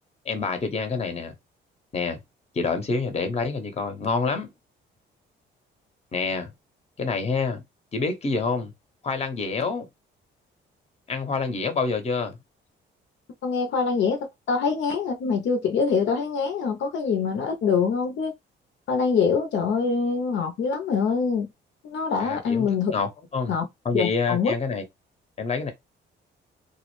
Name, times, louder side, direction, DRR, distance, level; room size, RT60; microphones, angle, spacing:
voice 1, 0.2-1.3 1.9-2.2 2.5-4.5 6.1-6.5 7.0-7.6 7.9-8.7 9.0-9.9 11.1-12.4 22.2-23.5 23.8-24.8 25.4-25.7, left 4 dB, 30° left, 0.7 m, -27 dB
voice 2, 13.4-18.3 18.9-21.5 21.8-22.9 23.5-23.6 23.9-24.5, left 5 dB, 70° left, 0.6 m, -24 dB
2.3 x 2.0 x 3.0 m
cardioid pair, 90°, 20 cm